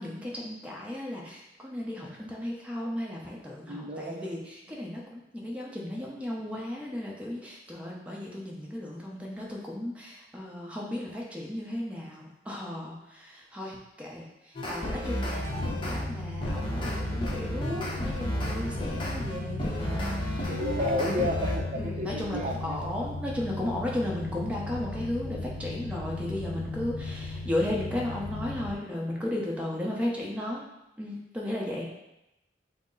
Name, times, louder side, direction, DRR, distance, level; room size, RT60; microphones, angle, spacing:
voice 1, 0.0-20.5 20.8-21.1 21.8-30.6 31.0-31.9, left 1 dB, 5° right, -3 dB, 0.8 m, -35 dB
voice 2, 3.7-4.4 20.5-22.8, left 1 dB, 40° right, 1 dB, 0.6 m, -31 dB
sound 1, 14.5-16.0 16.4-21.6, equal, 30° left, 0.7 m, -32 dB
sound 2, 15.3-28.7, left 2 dB, 60° left, 0.7 m, -37 dB
6.0 x 2.0 x 3.9 m, 0.89 s
head